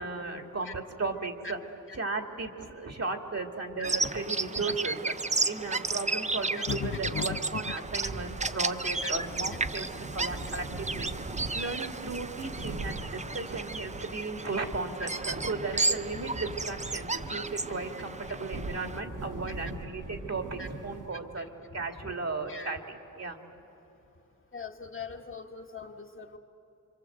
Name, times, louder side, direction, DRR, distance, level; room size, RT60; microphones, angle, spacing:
voice 1, 0.0-1.6 1.9-5.1 5.4-9.9 10.1-11.1 11.5-23.4, right 3 dB, 50° right, 4 dB, 2.5 m, -35 dB
Bird vocalization bird call bird song, 3.8-19.0, right 3 dB, 20° right, 0.7 m, -33 dB
sound 1, 6.7-7.8, left 8 dB, 70° left, 0.8 m, -34 dB
sound 2, 8.7-21.4, right 2 dB, 70° right, 2.1 m, -42 dB
voice 2, 24.5-26.4, left 4 dB, 40° left, 3 dB, 1.5 m, -41 dB
28.0 x 25.0 x 8.0 m, 2.9 s
wide cardioid pair, 85°, 32 cm